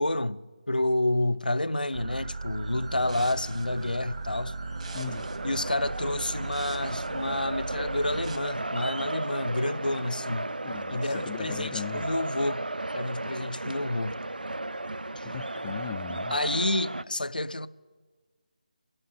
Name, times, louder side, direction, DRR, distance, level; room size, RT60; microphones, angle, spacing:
voice 1, 0.0-4.6 5.4-10.5 10.9-12.6 12.9-14.2 15.2-15.3 16.3-17.7, left 1 dB, 85° left, 0.6 m, -29 dB
sound 1, 1.9-8.4, right 3 dB, 55° right, 2.1 m, -37 dB
voice 2, 4.9-5.3 10.6-12.0 15.3-16.3, left 8 dB, 20° left, 0.4 m, -38 dB
sound 2, 4.9-17.0, right 2 dB, 90° right, 0.4 m, -35 dB
17.5 x 11.0 x 7.4 m
figure-of-eight pair, 155°, 5 cm